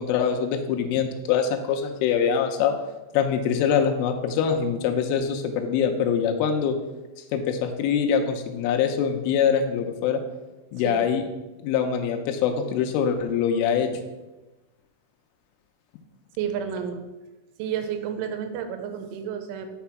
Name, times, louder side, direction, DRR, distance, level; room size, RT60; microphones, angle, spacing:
voice 1, 0.0-2.8 3.1-6.8 7.3-10.2 10.7-11.2 11.6-13.9, left 7 dB, 90° left, 5 dB, 3.2 m, -24 dB
voice 2, 16.4-17.1 17.6-19.7, right 8 dB, 90° right, 7 dB, 3.1 m, -31 dB
6.3 x 5.9 x 5.8 m, 1.1 s
omnidirectional pair, 5.6 m